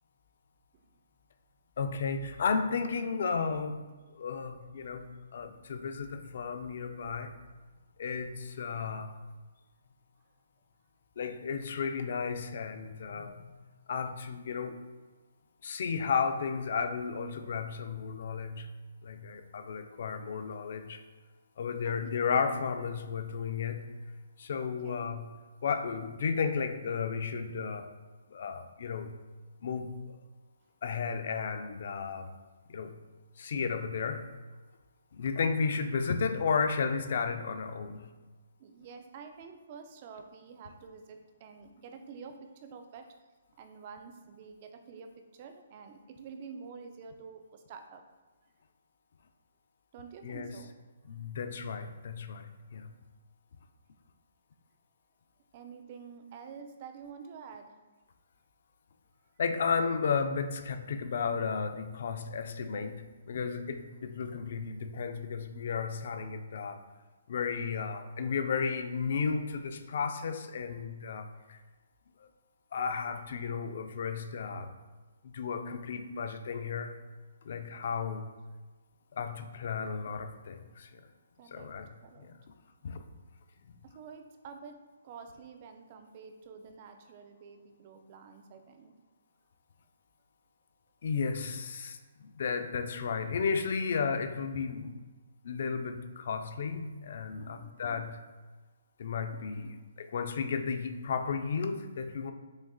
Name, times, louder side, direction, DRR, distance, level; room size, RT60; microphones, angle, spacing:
voice 1, 1.8-3.8 4.1-7.3 8.0-9.1 11.2-13.6 13.9-14.8 15.6-18.7 19.0-21.0 21.6-23.8 24.4-25.3 25.6-27.9 28.3-29.1 29.6-30.0 30.8-32.3 32.7-32.9 33.4-34.2 35.2-38.1 50.2-50.5 51.1-52.5 52.7-52.9 59.4-66.8 67.3-71.6 72.2-72.3 72.7-74.7 75.2-76.9 77.4-78.2 79.1-81.0 81.5-81.9 82.2-82.3 82.8-83.0 91.0-95.0 95.4-98.2 99.0-99.7 100.0-102.3, left 5 dB, 55° left, 8 dB, 0.4 m, -33 dB
voice 2, 24.6-25.1 38.6-43.1 43.6-48.0 49.9-50.7 55.5-57.7 75.9-76.1 77.9-78.2 81.4-81.7 82.0-82.3 83.8-88.9 97.4-97.7 99.3-99.8, right 5 dB, 35° right, 6 dB, 0.4 m, -49 dB
6.1 x 2.4 x 2.3 m, 1.3 s
hypercardioid pair, 160°, 0 cm